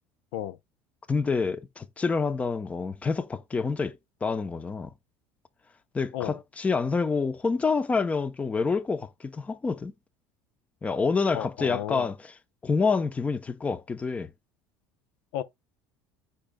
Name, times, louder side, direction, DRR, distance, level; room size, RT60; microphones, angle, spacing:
voice 1, 1.1-4.9 5.9-9.9 10.8-12.2 12.6-14.3, left 4 dB, 15° left, 0.7 m, -27 dB
voice 2, 11.3-12.1 15.3-15.4, left 12 dB, 75° left, 0.7 m, -33 dB
14.0 x 5.1 x 2.2 m
cardioid pair, 145°, 9 cm